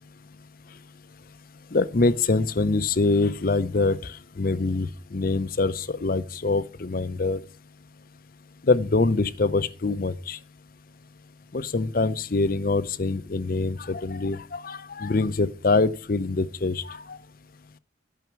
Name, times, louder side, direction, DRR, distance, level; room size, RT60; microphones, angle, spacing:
voice 1, 1.7-4.0 4.4-7.4 8.7-10.4 11.5-17.2, left 3 dB, 45° left, 0.6 m, -24 dB
12.5 x 5.7 x 5.9 m
head